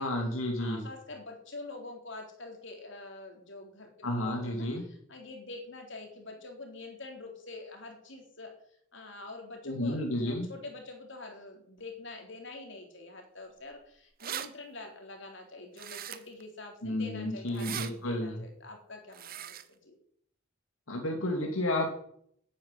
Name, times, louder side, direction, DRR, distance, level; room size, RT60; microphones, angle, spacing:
voice 1, 0.0-0.8 4.0-4.8 9.6-10.5 16.8-18.4 20.9-21.9, left 1 dB, 80° left, 1 dB, 2.6 m, -31 dB
voice 2, 0.6-8.5 8.9-20.0, left 2 dB, 60° left, 3 dB, 3.6 m, -46 dB
sound 1, 13.7-13.8 14.0-14.5 15.8-16.4 17.5-17.9 19.1-19.6, right 9 dB, 45° right, 0.9 m, -39 dB
10.0 x 9.3 x 9.8 m, 0.68 s
head